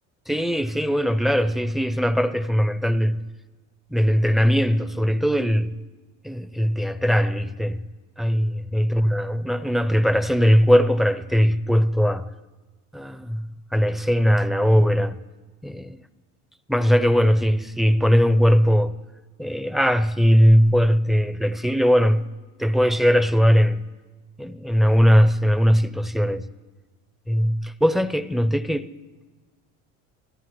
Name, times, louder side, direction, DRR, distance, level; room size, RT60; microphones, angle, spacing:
voice 1, 0.3-3.2 3.9-5.7 6.2-7.8 8.2-12.3 12.9-13.5 13.7-15.2 15.6-16.0 16.7-18.9 19.4-22.2 22.6-23.8 24.4-26.5 27.3-28.9, equal, ahead, 0.5 m, -20 dB
24.5 x 15.0 x 3.1 m
supercardioid pair, 85°, 37 cm